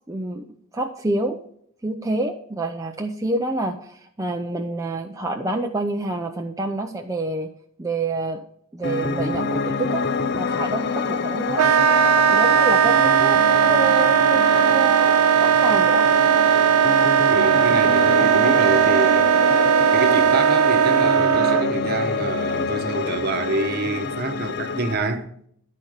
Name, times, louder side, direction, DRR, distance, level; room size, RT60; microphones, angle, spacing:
voice 1, 0.1-0.5 0.7-1.4 1.8-7.5 7.8-8.4 8.7-10.0 10.3-11.7 12.3-16.1, right 2 dB, 15° right, 0.5 m, -27 dB
Piano, 8.8-24.9, left 4 dB, 50° left, 0.6 m, -26 dB
Wind instrument woodwind instrument, 11.6-21.7, right 9 dB, 90° right, 0.5 m, -17 dB
voice 2, 17.3-19.3 19.9-25.3, right 2 dB, 45° right, 1.0 m, -27 dB
12.0 x 4.2 x 6.5 m
head